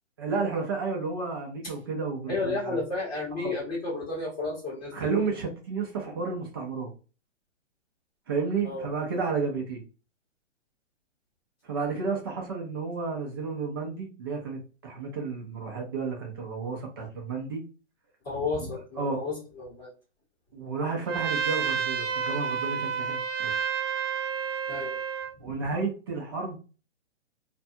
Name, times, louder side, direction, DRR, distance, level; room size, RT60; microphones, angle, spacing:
voice 1, 0.2-2.8 3.4-3.5 4.9-6.9 8.3-9.8 11.6-17.6 18.9-19.3 20.5-23.5 25.4-26.6, right 4 dB, 20° right, 0 dB, 0.4 m, -32 dB
voice 2, 2.3-4.9 8.6-8.8 18.2-19.9 24.7-25.0, left 3 dB, 20° left, -7 dB, 0.9 m, -32 dB
Trumpet, 21.1-25.3, right 7 dB, 85° right, 0.6 m, -30 dB
2.6 x 2.2 x 2.6 m, 0.34 s
hypercardioid pair, 155°, 37 cm